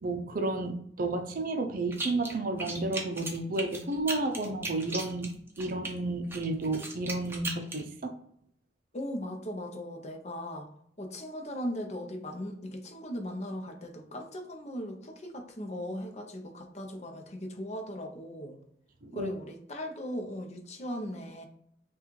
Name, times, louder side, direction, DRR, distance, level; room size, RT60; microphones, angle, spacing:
voice 1, 0.0-8.1 19.0-19.3, right 2 dB, 50° right, 6 dB, 0.5 m, -32 dB
sound 1, 1.9-2.3 2.6-5.9 6.3-7.8, right 2 dB, 15° right, 0.7 m, -37 dB
voice 2, 8.9-10.7 11.0-18.6 19.1-21.5, equal, 40° left, 4 dB, 0.7 m, -38 dB
5.9 x 2.4 x 3.1 m, 0.68 s
head